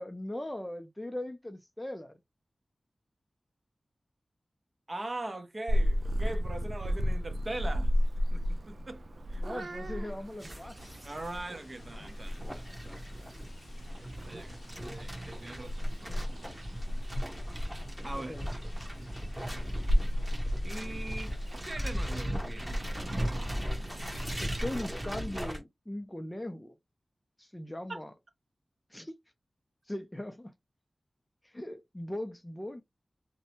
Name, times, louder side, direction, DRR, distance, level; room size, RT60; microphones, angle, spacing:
voice 1, 0.0-2.2 9.3-10.9 18.1-18.5 24.4-26.8 27.4-28.1 28.9-29.1 29.9-30.5 31.4-32.8, left 1 dB, 15° left, 0.4 m, -39 dB
voice 2, 4.9-7.9 8.3-9.0 9.3-9.7 11.0-13.3 14.0-16.3 18.0-18.3 20.6-21.3 21.6-22.8 27.9-28.0, right 2 dB, 40° right, 0.7 m, -41 dB
Purr / Meow, 5.7-25.2, equal, 75° right, 0.3 m, -34 dB
sound 1, 10.4-25.6, equal, 10° right, 0.9 m, -38 dB
sound 2, 10.8-21.6, left 2 dB, 85° left, 0.5 m, -55 dB
2.6 x 2.1 x 2.8 m
wide cardioid pair, 65°, 0 cm